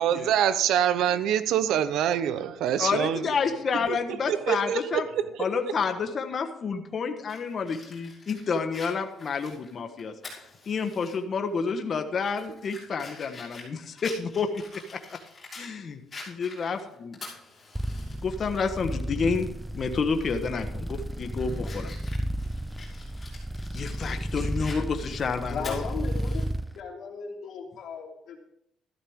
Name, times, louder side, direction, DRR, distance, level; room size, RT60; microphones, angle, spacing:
voice 1, 0.0-3.2 3.9-4.0 4.3-5.3, right 10 dB, 80° right, 0.8 m, -25 dB
voice 2, 2.8-5.1 5.4-14.6 15.5-16.0 16.3-17.2 18.2-21.9 23.7-25.8, left 5 dB, 40° left, 1.3 m, -29 dB
Fire, 7.3-11.2 11.6-11.7 12.2-15.7 16.1-18.1 18.5-18.6 20.1-20.4 20.9-26.5, left 3 dB, 25° left, 6.1 m, -46 dB
sound 1, 17.7-26.7, right 1 dB, 5° right, 0.5 m, -33 dB
voice 3, 25.5-26.4 26.7-28.4, left 5 dB, 70° left, 3.2 m, -36 dB
14.0 x 12.0 x 3.7 m
cardioid pair, 125°, 0 cm